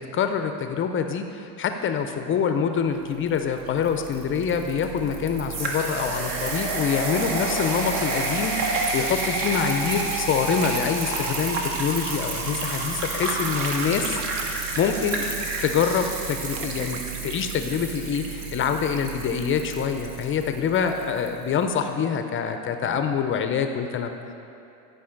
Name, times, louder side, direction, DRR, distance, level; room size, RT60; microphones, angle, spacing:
voice 1, 0.0-14.2 14.8-15.3 15.6-24.2, left 7 dB, 30° left, 7 dB, 0.4 m, -25 dB
sound 1, 3.3-21.3, right 3 dB, 60° right, 1.4 m, -30 dB
Bathtub (filling or washing), 13.5-19.2, right 6 dB, 75° right, 0.7 m, -39 dB
11.0 x 5.2 x 3.8 m, 2.7 s
hypercardioid pair, 90°, 47 cm